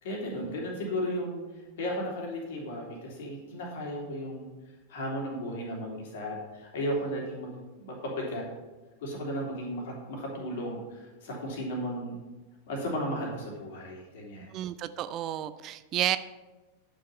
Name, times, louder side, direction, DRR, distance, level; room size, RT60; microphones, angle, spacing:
voice 1, 0.0-1.4 1.8-4.5 4.9-8.4 9.0-12.2 12.7-14.5, equal, 55° left, -1 dB, 3.2 m, -35 dB
voice 2, 14.5-16.2, right 12 dB, 35° right, 14 dB, 0.4 m, -31 dB
10.0 x 6.5 x 5.5 m, 1.2 s
figure-of-eight pair, 90°, 0 cm